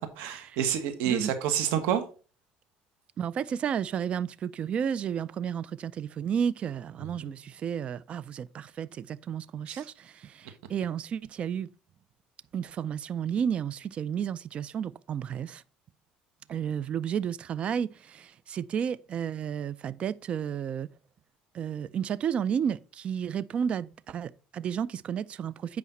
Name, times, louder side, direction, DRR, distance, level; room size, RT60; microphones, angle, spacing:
voice 1, 0.2-2.0 7.2-7.3 9.7-9.8, right 9 dB, 80° right, 1.5 m, -28 dB
voice 2, 3.2-11.7 12.5-15.6 16.5-20.9 21.5-25.8, right 8 dB, 40° right, 0.4 m, -32 dB
8.4 x 5.2 x 4.0 m
cardioid pair, 115°, 3 cm